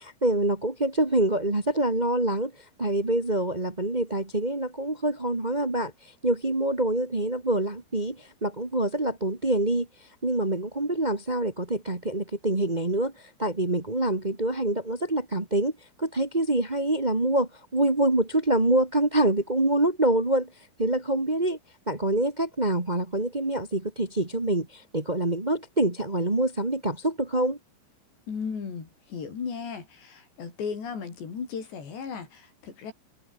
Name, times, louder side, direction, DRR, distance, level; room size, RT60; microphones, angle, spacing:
voice 1, 0.0-2.5 2.8-5.9 6.2-9.9 10.2-13.1 13.4-15.7 16.0-20.5 20.8-21.6 21.9-27.6, right 1 dB, 60° right, 0.4 m, -25 dB
voice 2, 28.3-32.9, left 6 dB, 60° left, 7.5 m, -36 dB
omnidirectional pair, 5.6 m